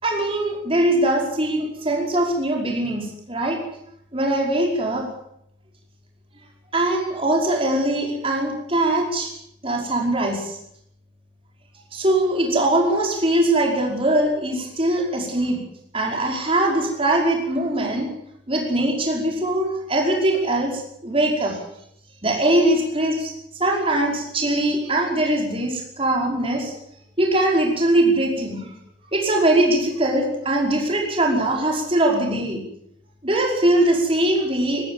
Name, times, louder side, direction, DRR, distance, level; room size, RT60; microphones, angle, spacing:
voice 1, 0.0-3.6 4.1-5.1 6.7-9.3 9.6-10.6 11.9-15.6 15.9-18.1 18.5-21.6 22.2-23.3 23.6-26.7 27.2-28.7 29.1-32.6 33.2-34.9, right 1 dB, 30° right, 0 dB, 5.4 m, -21 dB
20.5 x 15.0 x 8.9 m, 0.72 s
head